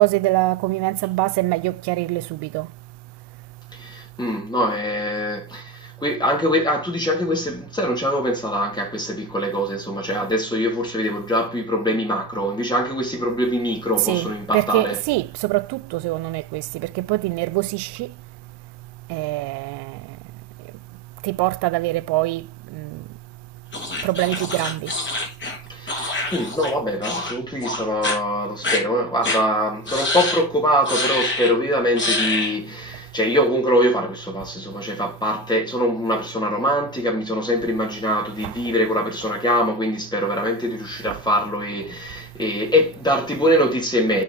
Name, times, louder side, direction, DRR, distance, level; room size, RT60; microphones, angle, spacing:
voice 1, 0.0-2.7 14.0-18.1 19.1-20.0 21.2-23.0 24.0-24.9 38.4-38.5 41.1-41.2, right 19 dB, 75° right, 0.5 m, -24 dB
voice 2, 3.7-15.0 25.7-44.2, equal, 10° left, 2.5 m, -23 dB
sound 1, 23.7-26.7 27.0-27.4 27.6-28.2 28.6-28.8 29.2-29.4 29.9-30.4 30.9-31.5 32.0-32.6, left 2 dB, 25° left, 3.2 m, -25 dB
13.5 x 4.9 x 3.0 m
cardioid pair, 100°, 41 cm